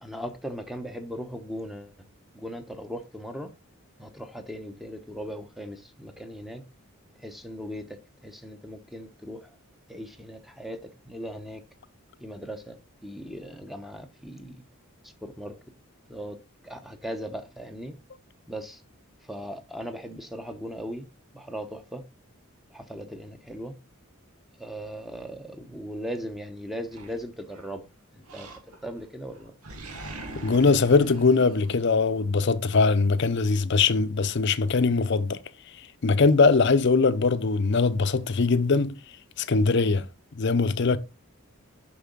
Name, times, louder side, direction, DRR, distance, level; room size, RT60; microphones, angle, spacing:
voice 1, 0.0-1.9 2.3-3.5 4.0-6.6 7.2-8.0 8.2-9.5 9.9-10.8 11.1-11.6 12.2-12.8 13.0-14.6 15.0-15.5 16.1-16.4 16.6-17.9 18.5-18.8 19.2-21.0 21.3-22.0 22.7-23.7 24.6-27.8 28.1-28.5 28.8-29.5, equal, ahead, 0.8 m, -38 dB
Animal, 26.9-27.7 28.3-29.0 29.3-32.3, right 2 dB, 90° right, 1.5 m, -43 dB
voice 2, 30.3-35.4 36.0-38.9 39.4-40.1 40.3-41.0, left 4 dB, 50° left, 0.6 m, -21 dB
6.8 x 5.4 x 3.9 m
head